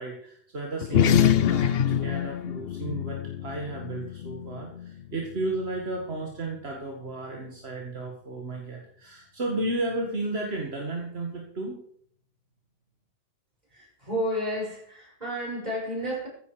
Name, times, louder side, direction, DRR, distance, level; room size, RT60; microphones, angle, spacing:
voice 1, 0.0-11.8, right 2 dB, 75° right, 0 dB, 2.2 m, -33 dB
sound 1, 0.8-5.6, left 10 dB, 70° left, 0.9 m, -26 dB
voice 2, 13.7-16.3, equal, 40° right, -4 dB, 7.3 m, -31 dB
15.0 x 11.0 x 5.0 m, 0.62 s
omnidirectional pair, 1.1 m